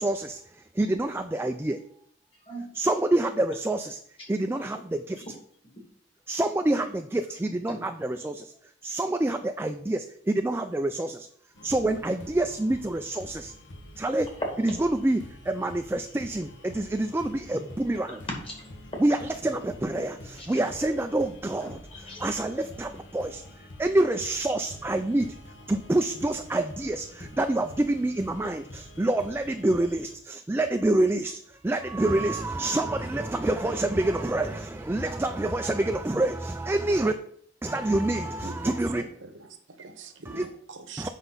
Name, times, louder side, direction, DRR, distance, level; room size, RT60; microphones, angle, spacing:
voice 1, 0.0-1.8 2.8-4.0 4.3-5.2 6.3-8.5 8.8-11.3 11.6-13.5 14.0-14.3 14.9-18.2 19.0-19.2 19.4-21.8 22.2-25.4 25.7-37.1 37.6-39.0 40.3-40.5 41.0-41.1, right 2 dB, 10° right, 6 dB, 0.3 m, -27 dB
voice 2, 2.3-2.7 4.2-4.3 5.2-5.3 5.7-5.8 7.7-7.9 17.5-17.6 18.1-18.6 20.3-20.6 21.6-22.4, equal, 30° left, 0 dB, 2.1 m, -40 dB
sound 1, 11.5-30.1, left 1 dB, 75° left, 1.3 m, -47 dB
voice 3, 38.4-38.8 39.2-41.1, right 3 dB, 85° right, 7 dB, 1.1 m, -43 dB
7.9 x 5.4 x 4.0 m, 0.63 s
head